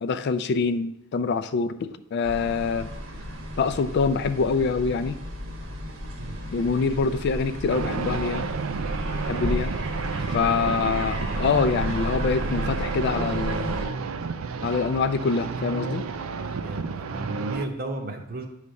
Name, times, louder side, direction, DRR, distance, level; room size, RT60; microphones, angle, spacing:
voice 1, 0.0-2.9 3.6-5.2 6.5-8.5 9.3-9.8 10.3-13.9 14.6-16.0, left 5 dB, 55° left, 12 dB, 0.4 m, -25 dB
sound 1, 2.2-13.9, equal, 70° right, 1.4 m, -33 dB
sound 2, 7.7-17.7, right 5 dB, 90° right, 0.5 m, -31 dB
voice 2, 16.3-18.5, right 2 dB, 45° right, 4 dB, 0.9 m, -34 dB
9.5 x 3.3 x 5.2 m, 0.83 s
head